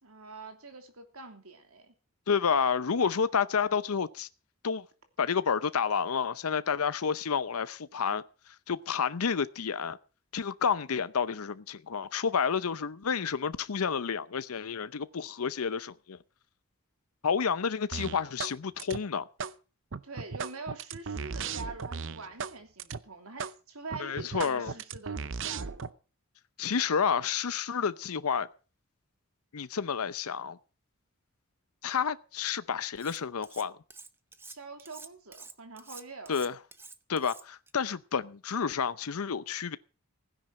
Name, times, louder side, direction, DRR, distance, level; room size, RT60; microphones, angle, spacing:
voice 1, 0.0-1.9 20.0-25.9 34.5-36.4, right 3 dB, 80° right, 3.0 m, -45 dB
voice 2, 2.3-4.3 4.6-4.8 5.2-8.2 8.7-10.0 10.3-16.2 17.2-19.3 24.0-24.7 26.6-28.5 29.5-30.6 31.8-33.8 36.3-36.5 37.1-39.8, left 6 dB, 85° left, 0.7 m, -30 dB
sound 1, 17.9-18.5 18.8-19.5 19.9-22.5 22.8-23.0 23.4-23.5 23.9-25.9, right 5 dB, 55° right, 0.7 m, -36 dB
Cutlery silverware, 33.0-33.6 33.9-37.7, right 4 dB, 10° right, 0.7 m, -48 dB
16.0 x 10.0 x 6.3 m
head